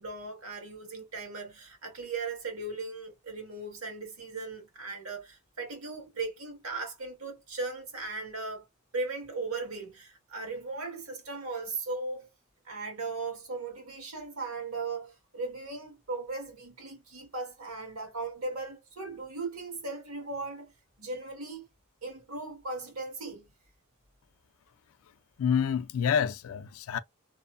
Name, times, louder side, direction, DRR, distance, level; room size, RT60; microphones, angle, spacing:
voice 1, 0.0-8.7 8.9-12.3 12.6-20.7 21.0-21.6 22.0-23.5, right 3 dB, 90° right, 1.6 m, -37 dB
voice 2, 25.4-27.0, left 7 dB, 80° left, 0.4 m, -28 dB
3.0 x 2.0 x 2.4 m
head